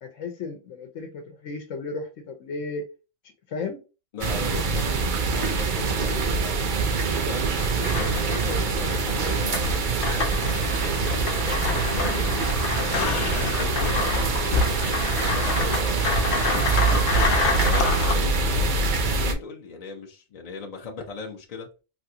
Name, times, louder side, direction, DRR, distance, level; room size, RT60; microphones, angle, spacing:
voice 1, 0.0-2.8 3.5-3.8 7.8-8.1, left 4 dB, 90° left, 1.0 m, -34 dB
voice 2, 4.1-6.4 7.1-7.5 7.9-12.4 13.1-16.3 16.9-18.7 19.1-21.7, left 4 dB, 50° left, 0.4 m, -38 dB
sound 1, 4.2-19.3, right 4 dB, 55° right, 0.5 m, -25 dB
sound 2, 7.6-18.1, left 4 dB, 70° left, 0.9 m, -28 dB
3.3 x 2.5 x 2.7 m
omnidirectional pair, 1.3 m